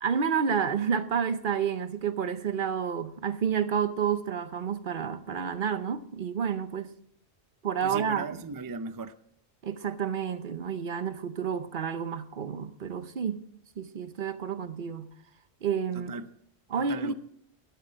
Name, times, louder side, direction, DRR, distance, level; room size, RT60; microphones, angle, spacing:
voice 1, 0.0-6.9 7.6-8.3 9.6-13.4 13.8-15.1 15.6-16.1 16.7-17.1, right 7 dB, 55° right, 0.8 m, -30 dB
voice 2, 7.8-9.1 15.9-16.3 16.8-17.1, right 4 dB, 30° right, 0.4 m, -37 dB
13.0 x 11.5 x 5.1 m
omnidirectional pair, 1.1 m